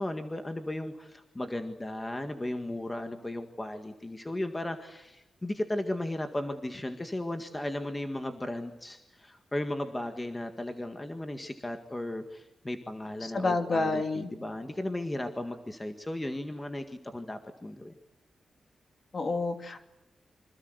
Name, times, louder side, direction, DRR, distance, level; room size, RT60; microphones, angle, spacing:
voice 1, 0.0-18.0, left 1 dB, 15° left, 6 dB, 1.8 m, -35 dB
voice 2, 13.2-14.3 19.1-19.8, left 3 dB, 35° left, 7 dB, 2.9 m, -29 dB
27.5 x 25.5 x 8.1 m, 0.93 s
wide cardioid pair, 165°, 0 cm